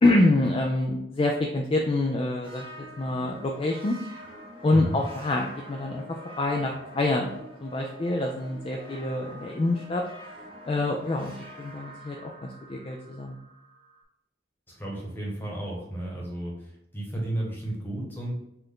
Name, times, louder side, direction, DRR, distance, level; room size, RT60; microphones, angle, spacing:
voice 1, 0.0-2.7 3.0-4.0 4.6-6.0 6.4-7.3 7.6-10.0 10.6-13.4, left 2 dB, 30° left, 1 dB, 0.4 m, -26 dB
sound 1, 2.4-14.0, equal, 30° right, 1.2 m, -46 dB
voice 2, 4.7-5.0 14.7-18.4, right 1 dB, 10° left, -3 dB, 1.2 m, -33 dB
5.5 x 2.5 x 3.6 m, 0.84 s
head